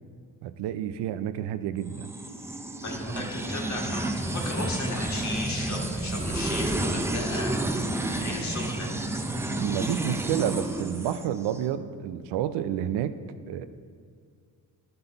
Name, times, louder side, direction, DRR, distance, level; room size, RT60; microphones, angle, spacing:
voice 1, 0.4-2.1 9.6-13.2 13.5-13.7, right 10 dB, 90° right, 11 dB, 0.5 m, -29 dB
sound 1, 1.9-11.6, right 1 dB, 5° right, 0.3 m, -30 dB
voice 2, 2.8-8.9, left 2 dB, 45° left, 0 dB, 1.5 m, -36 dB
12.0 x 5.5 x 3.9 m, 2.1 s
cardioid pair, 135°, 41 cm